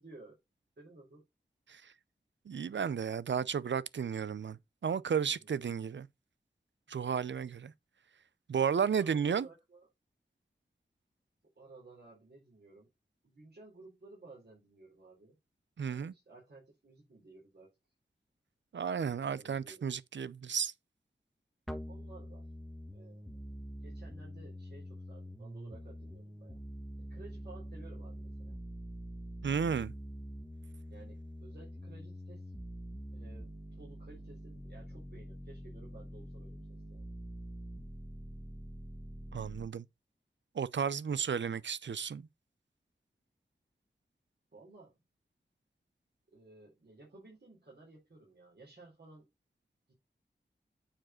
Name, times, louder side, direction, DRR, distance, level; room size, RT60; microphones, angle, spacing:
voice 1, 0.0-0.4 0.8-1.2 5.3-5.5 8.9-9.9 11.6-12.9 13.2-15.4 15.8-17.8 19.1-19.9 21.9-22.5 22.9-23.5 23.8-26.6 27.0-28.6 30.9-32.5 33.1-33.5 33.8-37.1 44.5-45.0 46.3-49.3 49.9-50.0, right 2 dB, 60° right, 4.2 m, -56 dB
voice 2, 2.5-6.1 6.9-7.7 8.5-9.5 15.8-16.1 18.7-20.7 29.4-29.9 39.3-39.8 40.5-42.3, right 7 dB, 80° right, 0.6 m, -33 dB
sound 1, 21.7-39.7, equal, ahead, 1.6 m, -45 dB
8.7 x 5.0 x 4.3 m
wide cardioid pair, 50°, 19 cm